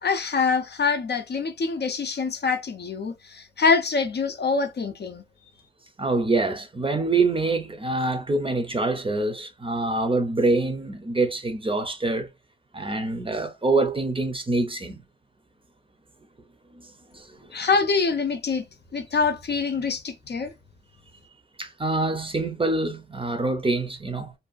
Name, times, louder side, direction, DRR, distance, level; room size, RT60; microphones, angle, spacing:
voice 1, 0.0-5.2 17.5-18.6 18.9-20.5, left 4 dB, 55° left, 0.5 m, -25 dB
voice 2, 6.0-12.3 12.7-15.0 16.7-17.5 21.6-24.3, right 2 dB, 25° right, 0.6 m, -25 dB
2.6 x 2.2 x 2.3 m
wide cardioid pair, 85°, 20 cm